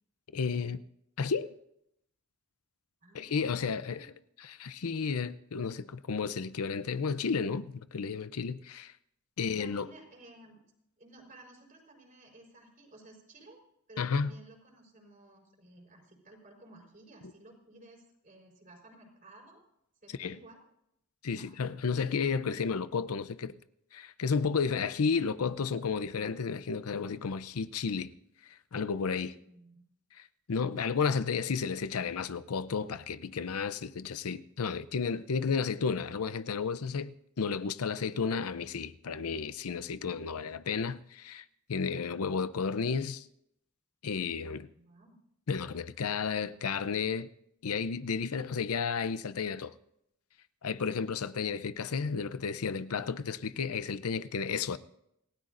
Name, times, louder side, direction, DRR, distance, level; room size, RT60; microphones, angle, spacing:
voice 1, 0.3-0.8 1.2-1.6 3.1-4.1 4.4-8.9 9.4-9.9 14.0-14.3 20.2-20.4 21.2-23.5 23.9-28.1 28.5-29.3 30.2-43.3 44.0-44.7 45.5-47.3 47.6-49.7 50.6-54.8, left 5 dB, 80° left, 0.6 m, -32 dB
voice 2, 3.0-4.1 9.4-10.6 11.0-13.6 13.9-19.6 20.0-20.6 21.4-21.7 29.4-29.9 44.8-45.2, right 2 dB, 40° right, 4.4 m, -55 dB
28.0 x 17.0 x 2.6 m
head